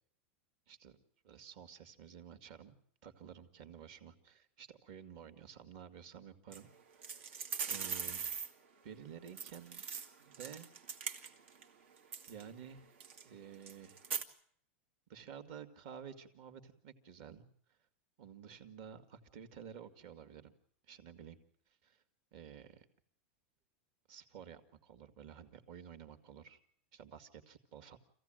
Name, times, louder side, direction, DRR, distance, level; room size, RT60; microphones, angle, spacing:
voice 1, 0.7-1.0 1.2-2.8 3.0-6.7 6.9-7.3 7.7-8.3 8.8-9.9 10.3-10.7 12.3-12.9 13.2-14.1 15.1-17.4 18.2-20.5 20.9-21.4 21.8-22.0 22.3-22.9 24.1-26.6 26.9-28.0, right 8 dB, 50° right, 8 dB, 2.2 m, -52 dB
sound 1, 6.5-6.6 7.0-8.5 9.3-11.6 12.0-12.4 13.0-13.2 13.6-14.2, right 6 dB, 80° right, 2.3 m, -41 dB
25.5 x 16.0 x 9.1 m, 0.62 s
supercardioid pair, 165°, 7 cm